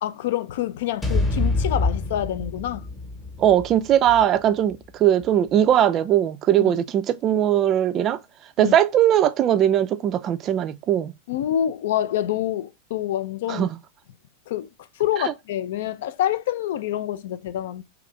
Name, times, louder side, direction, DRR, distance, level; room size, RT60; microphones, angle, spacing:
voice 1, 0.0-2.9 6.6-6.7 8.6-8.8 11.3-13.7 14.5-14.7 15.0-17.8, left 11 dB, 60° left, 0.3 m, -26 dB
sound 1, 1.0-5.2, left 2 dB, 10° left, 0.9 m, -27 dB
voice 2, 3.4-8.2 8.6-11.1 13.5-13.7 15.2-15.3, right 11 dB, 35° right, 0.3 m, -20 dB
2.9 x 2.5 x 3.1 m
figure-of-eight pair, 90°, 0 cm